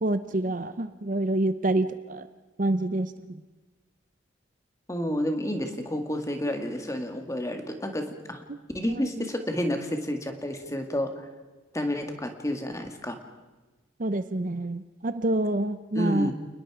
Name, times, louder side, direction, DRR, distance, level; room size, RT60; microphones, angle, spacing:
voice 1, 0.0-2.3 2.6-3.4 14.0-16.3, right 2 dB, 45° right, 12 dB, 0.7 m, -27 dB
voice 2, 4.9-8.4 8.7-11.3 11.7-13.2 15.9-16.3, equal, 15° left, 5 dB, 2.0 m, -30 dB
29.0 x 20.0 x 5.0 m, 1.2 s
head